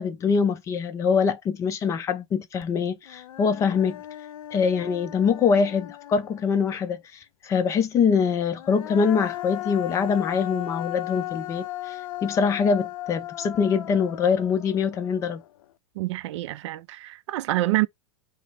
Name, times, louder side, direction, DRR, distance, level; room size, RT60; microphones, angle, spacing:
voice 1, 0.0-4.0 4.5-7.0 7.4-15.4, left 6 dB, 20° left, 0.4 m, -24 dB
Human voice, 2.6-2.7 3.1-6.7 8.4-15.6, left 15 dB, 80° left, 0.5 m, -37 dB
voice 2, 16.0-17.9, right 18 dB, 60° right, 0.4 m, -27 dB
5.0 x 2.0 x 3.9 m
supercardioid pair, 155°, 17 cm